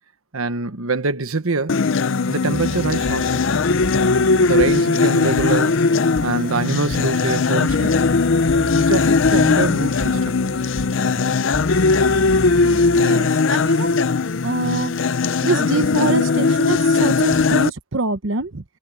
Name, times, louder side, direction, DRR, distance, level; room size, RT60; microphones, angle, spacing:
voice 1, 0.3-1.8 2.3-3.4 4.3-5.8 6.2-8.0 8.6-10.3, right 3 dB, 90° right, 1.2 m, -24 dB
sound 1, 1.7-17.7, left 4 dB, 70° left, 0.6 m, -19 dB
sound 2, 2.5-13.0, left 1 dB, 40° left, 2.3 m, -32 dB
voice 2, 12.6-14.0 14.4-14.9 15.4-18.6, right 3 dB, 70° right, 1.1 m, -24 dB
head